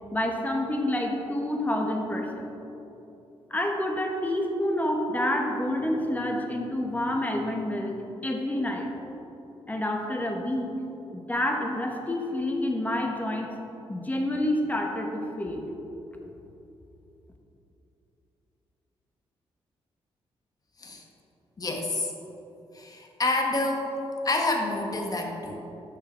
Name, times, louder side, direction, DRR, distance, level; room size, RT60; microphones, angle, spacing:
voice 1, 0.1-2.5 3.5-8.9 9.7-10.7 11.1-13.5 13.9-15.6, left 1 dB, 15° left, 2 dB, 1.4 m, -28 dB
voice 2, 21.6-22.1 22.7-23.9 24.2-25.6, left 2 dB, 35° left, 2 dB, 1.6 m, -28 dB
12.0 x 6.8 x 4.4 m, 3.0 s
cardioid pair, 80°, 10 cm